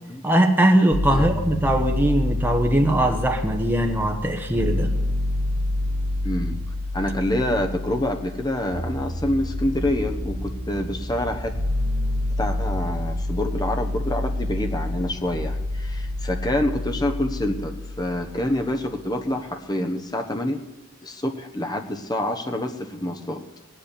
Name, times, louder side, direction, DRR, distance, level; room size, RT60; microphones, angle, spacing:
voice 1, 0.2-4.9, right 1 dB, 10° right, 3 dB, 1.1 m, -20 dB
sound 1, 0.9-18.9, left 1 dB, 50° right, 1.5 m, -28 dB
voice 2, 6.2-6.6 6.9-11.5 12.4-20.6 21.0-23.4, left 1 dB, 20° left, 4 dB, 1.2 m, -27 dB
19.0 x 8.1 x 8.6 m, 1.1 s
head